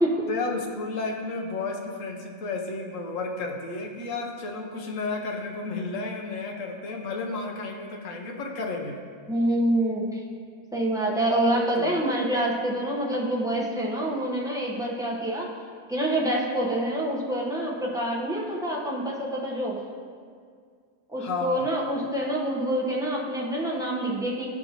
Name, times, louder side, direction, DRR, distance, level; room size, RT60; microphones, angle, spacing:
voice 1, 0.3-9.0 11.8-12.1 21.2-21.7, left 3 dB, 60° left, 1 dB, 1.2 m, -32 dB
voice 2, 9.3-10.2 10.7-15.5 15.9-19.8 21.1-24.5, right 1 dB, 5° right, -5 dB, 0.7 m, -26 dB
13.0 x 5.3 x 2.9 m, 2.1 s
omnidirectional pair, 1.7 m